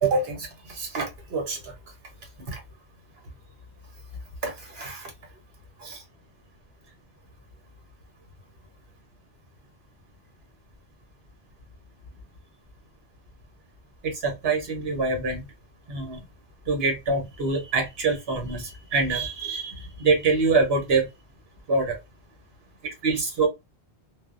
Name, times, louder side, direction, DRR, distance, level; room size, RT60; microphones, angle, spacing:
voice 1, 0.0-1.7 2.5-2.6 4.4-5.1 5.8-6.0 14.0-15.4 15.9-16.2 16.7-21.1 21.7-22.0 23.0-23.5, right 4 dB, 70° right, 1.2 m, -25 dB
2.5 x 2.0 x 2.4 m
omnidirectional pair, 1.1 m